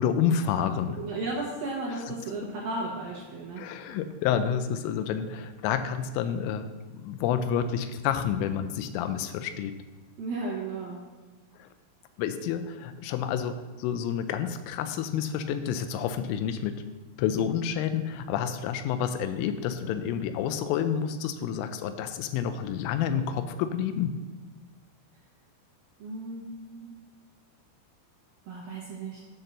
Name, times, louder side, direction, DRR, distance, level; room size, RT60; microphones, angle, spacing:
voice 1, 0.0-1.0 3.6-6.7 7.0-9.8 11.6-11.7 12.2-16.8 17.2-24.2, left 8 dB, 85° left, 10 dB, 3.1 m, -29 dB
voice 2, 0.9-3.6 10.2-11.0 26.0-26.9 28.4-29.2, right 2 dB, 75° right, -4 dB, 2.2 m, -34 dB
10.5 x 4.5 x 6.5 m, 1.3 s
omnidirectional pair, 5.7 m